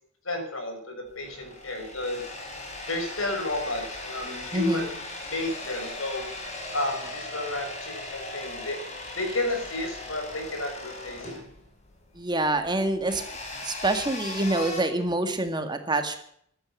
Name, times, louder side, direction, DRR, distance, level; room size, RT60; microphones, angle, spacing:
voice 1, 0.2-2.2 2.9-4.9 5.2-6.3 6.7-8.8 9.2-11.4, left 2 dB, 75° left, 3 dB, 6.4 m, -32 dB
sound 1, 1.1-14.8, left 2 dB, 35° left, 5.1 m, -38 dB
voice 2, 4.5-4.9 12.2-13.2 13.6-16.2, right 2 dB, 20° right, 7 dB, 2.0 m, -26 dB
15.0 x 13.0 x 7.3 m, 0.67 s
head